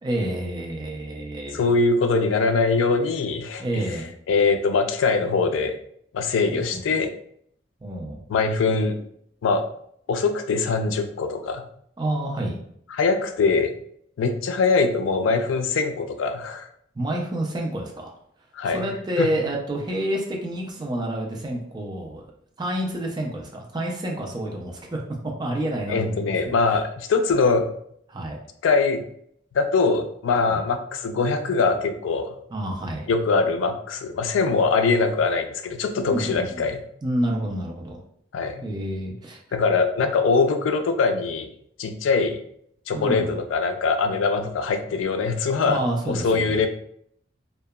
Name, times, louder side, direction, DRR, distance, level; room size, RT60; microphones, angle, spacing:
voice 1, 0.0-1.7 3.6-4.1 6.5-6.9 7.8-8.2 12.0-12.6 16.9-18.1 18.6-22.2 22.6-25.0 25.4-26.2 26.4-26.8 28.1-28.4 30.5-30.6 32.5-33.1 36.1-36.7 37.0-38.0 38.6-39.4 42.9-43.3 45.6-46.6, right 1 dB, 20° right, 0 dB, 0.3 m, -29 dB
voice 2, 1.5-3.8 4.3-5.8 6.1-7.1 8.3-9.0 9.4-9.6 10.1-11.6 12.9-13.7 14.2-16.7 18.6-18.9 19.2-19.3 25.9-27.7 28.6-29.0 29.5-32.3 33.1-36.8 38.3-38.6 39.5-41.5 41.8-42.4 42.9-46.7, left 4 dB, 85° left, 7 dB, 0.3 m, -22 dB
2.7 x 2.1 x 2.2 m, 0.68 s
head